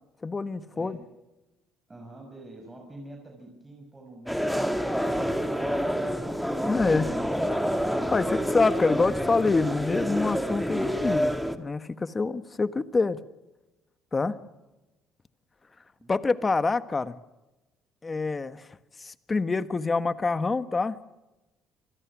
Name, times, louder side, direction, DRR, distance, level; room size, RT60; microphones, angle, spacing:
voice 1, 0.2-1.0 6.7-7.1 8.1-13.2 14.1-14.4 16.1-17.2 18.0-18.7 19.0-21.0, left 3 dB, 25° left, 13 dB, 1.4 m, -26 dB
voice 2, 1.9-7.4 14.2-14.5 16.0-16.1, right 2 dB, 15° right, 2 dB, 6.2 m, -47 dB
sound 1, 4.3-11.6, equal, ahead, 2.0 m, -28 dB
27.5 x 21.5 x 6.2 m, 1.0 s
cardioid pair, 110°, 0 cm